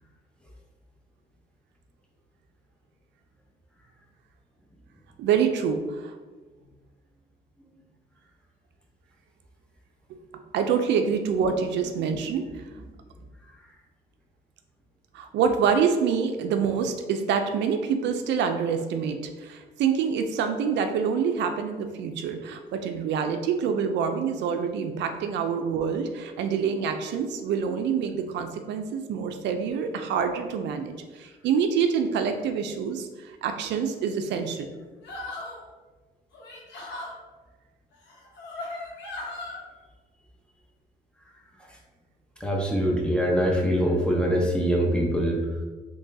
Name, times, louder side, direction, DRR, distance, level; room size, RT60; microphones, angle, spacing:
voice 1, 5.2-6.1 10.5-12.6 15.1-34.7, right 6 dB, 80° right, 6 dB, 0.4 m, -26 dB
sound 1, 35.0-35.6 36.3-37.1 38.1-39.6, left 2 dB, 75° left, 1.0 m, -37 dB
voice 2, 42.4-45.4, equal, 5° left, -2 dB, 0.8 m, -23 dB
3.7 x 3.1 x 2.6 m, 1.3 s
cardioid pair, 85°, 18 cm